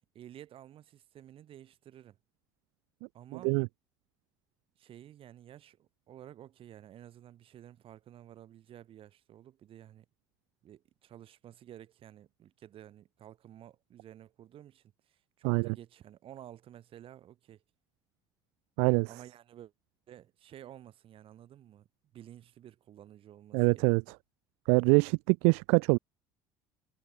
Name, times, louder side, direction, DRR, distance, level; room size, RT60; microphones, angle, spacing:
voice 1, 0.1-2.2 3.1-3.6 4.8-10.0 10.6-17.6 19.1-19.7 20.1-21.9 22.1-23.9, right 11 dB, 55° right, 6.8 m, -52 dB
voice 2, 23.5-24.0 24.7-26.0, right 39 dB, 70° right, 0.6 m, -24 dB
hypercardioid pair, 65°, 11 cm